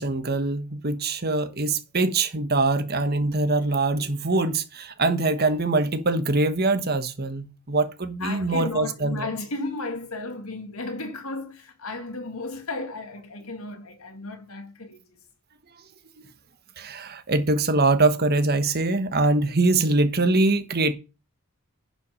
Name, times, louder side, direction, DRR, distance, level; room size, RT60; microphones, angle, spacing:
voice 1, 0.0-9.3 16.2-16.3 16.8-20.9, right 2 dB, 45° right, 1.3 m, -23 dB
voice 2, 8.2-15.2, left 2 dB, 80° left, 2.0 m, -34 dB
10.5 x 5.9 x 5.6 m
head